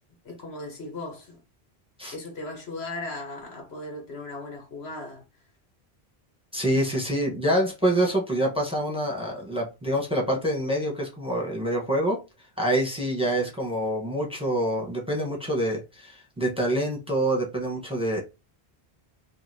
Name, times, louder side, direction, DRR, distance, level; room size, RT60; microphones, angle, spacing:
voice 1, 0.2-1.4 2.1-5.2, left 2 dB, 75° left, 1.7 m, -37 dB
voice 2, 6.5-12.2 12.6-18.2, right 1 dB, 5° right, 1.3 m, -26 dB
5.5 x 2.7 x 2.8 m
omnidirectional pair, 1.1 m